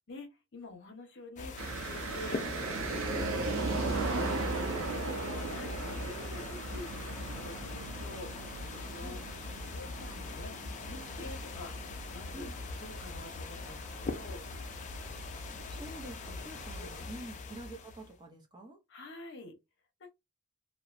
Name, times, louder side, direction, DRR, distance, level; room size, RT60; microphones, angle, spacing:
voice 1, 0.1-9.2 9.6-11.7 12.1-12.5 12.8-14.4 16.8-16.9 18.9-19.5 20.0-20.1, left 2 dB, 55° left, 0.8 m, -48 dB
sound 1, 1.4-18.2, left 3 dB, 35° left, 0.4 m, -42 dB
sound 2, 1.6-17.0, right 3 dB, 65° right, 0.6 m, -38 dB
voice 2, 15.7-18.8, right 1 dB, 20° right, 0.5 m, -47 dB
2.9 x 2.1 x 2.4 m
head